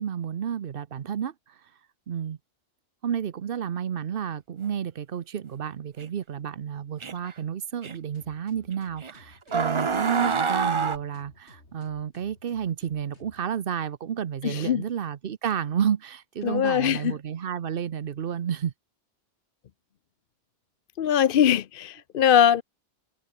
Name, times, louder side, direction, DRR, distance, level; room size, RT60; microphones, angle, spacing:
voice 1, 0.0-1.6 2.1-2.4 3.0-18.7, right 8 dB, 55° right, 0.9 m, -31 dB
sound 1, 6.0-6.1 7.0-7.3 7.8-7.9 9.0-9.1 9.5-11.0, right 5 dB, 30° right, 0.7 m, -26 dB
sound 2, 8.1-13.4, left 2 dB, 75° left, 5.1 m, -55 dB
voice 2, 14.4-14.8 16.4-17.1 21.0-22.6, left 9 dB, 55° left, 0.8 m, -21 dB
omnidirectional pair, 1.2 m